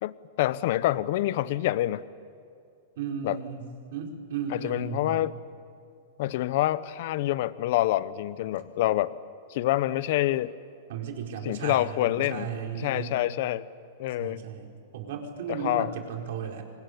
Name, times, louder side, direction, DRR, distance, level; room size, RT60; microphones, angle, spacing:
voice 1, 0.0-2.0 3.2-3.4 4.5-5.3 6.2-9.1 9.5-10.5 11.4-12.5 12.8-13.7 14.0-14.4 15.5-15.9, left 15 dB, 55° left, 17 dB, 0.9 m, -27 dB
voice 2, 3.0-5.3 10.9-13.1 14.2-16.7, right 7 dB, 65° right, 2 dB, 4.4 m, -35 dB
24.5 x 20.5 x 10.0 m, 2.4 s
hypercardioid pair, 145°, 0 cm